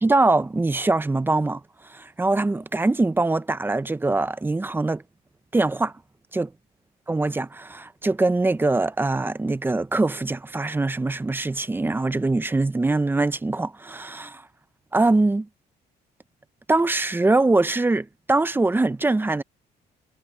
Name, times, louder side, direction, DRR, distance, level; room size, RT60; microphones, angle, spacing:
voice 1, 0.0-1.6 1.9-5.0 5.5-5.9 6.3-6.5 7.1-14.4 14.9-15.5 16.7-19.4, right 2 dB, 10° right, 0.8 m, -23 dB
cardioid pair, 110°, 17 cm